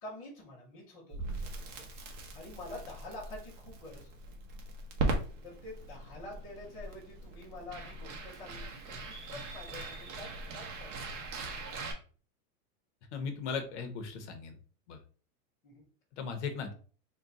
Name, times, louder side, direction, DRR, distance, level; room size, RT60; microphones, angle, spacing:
voice 1, 0.0-1.9 2.3-4.2 5.4-11.8 15.6-15.9, left 2 dB, 10° left, -8 dB, 0.4 m, -48 dB
Crackle, 1.1-11.9, right 2 dB, 50° right, 1.0 m, -39 dB
voice 2, 13.1-14.6 14.9-15.0 16.2-16.7, left 5 dB, 50° left, 7 dB, 0.7 m, -37 dB
3.6 x 2.2 x 3.9 m, 0.40 s
supercardioid pair, 170°, 47 cm